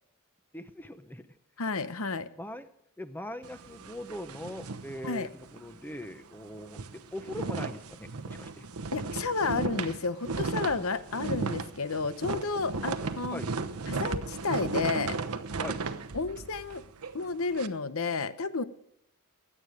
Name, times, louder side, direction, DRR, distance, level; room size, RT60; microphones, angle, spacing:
voice 1, 0.5-1.2 2.4-2.7 3.0-8.6 13.3-13.5 15.6-15.9, left 1 dB, 10° left, 10 dB, 0.8 m, -41 dB
voice 2, 1.6-2.3 5.0-5.3 8.9-13.4 13.9-15.2 16.1-16.8 17.1-18.6, left 4 dB, 70° left, 13 dB, 0.9 m, -31 dB
sound 1, 3.4-5.7 6.0-6.2 6.5-17.7, right 3 dB, 85° right, 1.0 m, -35 dB
16.5 x 11.0 x 5.0 m, 0.82 s
head